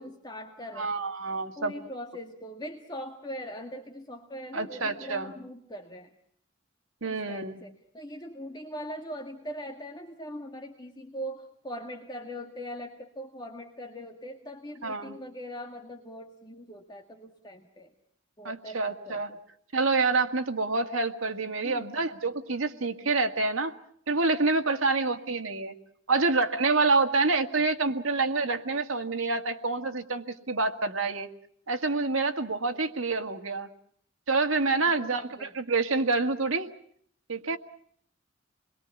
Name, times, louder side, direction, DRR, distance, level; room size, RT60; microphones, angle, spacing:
voice 1, 0.0-1.0 1.6-6.1 7.0-17.9 18.4-19.4 21.6-22.0 35.0-35.6, equal, 20° left, 3 dB, 1.9 m, -41 dB
voice 2, 0.8-1.7 4.5-5.3 7.0-7.6 14.8-15.2 18.4-19.3 19.7-23.7 24.1-25.8 26.1-31.3 31.7-33.7 34.3-36.7 37.3-37.6, right 3 dB, 85° right, 6 dB, 1.9 m, -27 dB
28.5 x 22.0 x 7.2 m, 0.64 s
head